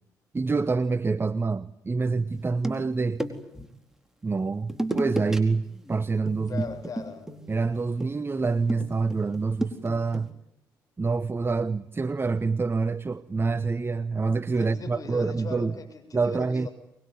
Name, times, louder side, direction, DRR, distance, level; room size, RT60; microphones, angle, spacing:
voice 1, 0.3-3.2 4.2-6.6 7.5-10.3 11.0-15.7 16.1-16.7, right 4 dB, 25° right, 1.0 m, -26 dB
sound 1, 2.3-3.7 4.7-5.4 5.7-5.9 6.3-10.3, right 1 dB, 5° right, 4.2 m, -34 dB
voice 2, 6.5-7.5 14.6-16.7, left 4 dB, 45° left, 7.2 m, -39 dB
24.0 x 22.5 x 9.6 m
hypercardioid pair, 50°, 9 cm